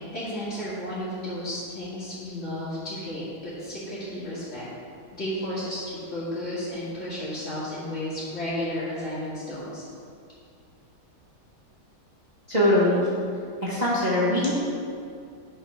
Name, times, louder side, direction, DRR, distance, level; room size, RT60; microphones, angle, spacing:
voice 1, 0.1-4.7 5.1-9.8, left 1 dB, 45° left, -12 dB, 2.3 m, -33 dB
voice 2, 12.5-13.1 13.6-14.5, left 1 dB, 25° right, -10 dB, 1.5 m, -22 dB
9.2 x 4.0 x 5.7 m, 2.4 s
omnidirectional pair, 1.9 m